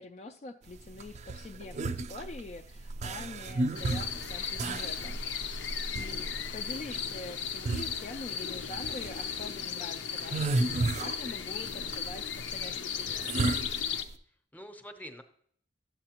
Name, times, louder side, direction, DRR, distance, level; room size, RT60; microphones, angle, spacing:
voice 1, 0.0-5.2 5.9-13.4, left 2 dB, 35° left, 5 dB, 0.3 m, -45 dB
sound 1, 0.7-14.1, right 2 dB, 40° right, 0.4 m, -34 dB
sound 2, 3.7-14.0, left 7 dB, 90° left, 0.5 m, -36 dB
voice 2, 5.9-6.5 14.5-15.2, equal, 10° left, 7 dB, 0.7 m, -48 dB
11.0 x 7.7 x 2.9 m, 0.64 s
head